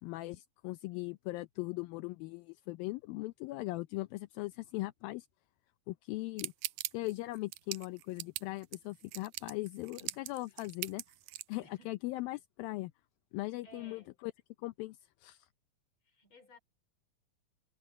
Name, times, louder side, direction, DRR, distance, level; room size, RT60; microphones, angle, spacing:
voice 1, 0.0-5.3 5.9-6.5 6.9-11.0 11.5-12.9 13.3-14.3 14.6-15.5, left 20 dB, 80° left, 2.5 m, -39 dB
sound 1, 6.4-11.5, right 17 dB, 90° right, 1.8 m, -41 dB
voice 2, 9.9-10.3 11.6-11.9 13.6-14.1 16.0-16.6, equal, 35° left, 5.8 m, -58 dB
omnidirectional pair, 4.2 m